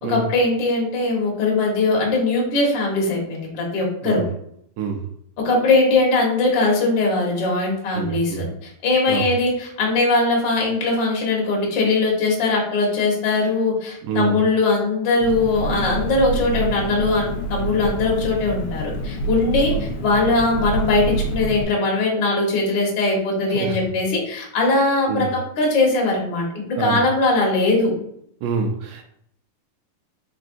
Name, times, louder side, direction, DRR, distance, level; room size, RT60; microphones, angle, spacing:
voice 1, 0.1-4.2 5.4-27.9, left 3 dB, 55° left, -2 dB, 1.4 m, -20 dB
voice 2, 8.0-8.5 9.1-9.3 14.0-14.4 19.7-19.9 23.6-23.8 25.1-25.3 26.8-27.0 28.4-29.0, right 6 dB, 80° right, 3 dB, 2.1 m, -26 dB
Engine, 15.2-21.6, right 2 dB, 75° left, 1.6 m, -27 dB
4.4 x 4.3 x 2.6 m, 0.69 s
omnidirectional pair, 3.7 m